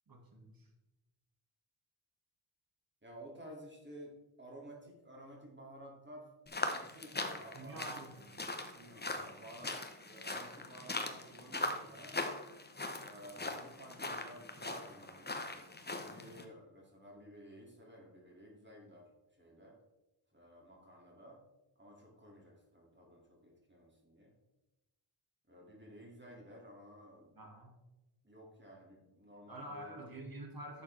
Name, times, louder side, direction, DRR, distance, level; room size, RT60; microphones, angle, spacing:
voice 1, 0.1-0.7 7.5-8.4 27.3-27.8 29.5-30.8, right 1 dB, 45° right, 2 dB, 2.1 m, -48 dB
voice 2, 3.0-6.3 6.7-8.0 8.8-9.8 10.1-12.2 13.0-19.1 19.4-19.7 20.3-21.4 21.8-24.3 25.5-27.3 28.2-29.9, right 1 dB, 20° right, -2 dB, 2.6 m, -54 dB
sound 1, 6.5-16.4, left 2 dB, 20° left, 1.0 m, -41 dB
11.5 x 7.1 x 3.4 m, 0.99 s
wide cardioid pair, 110°, 49 cm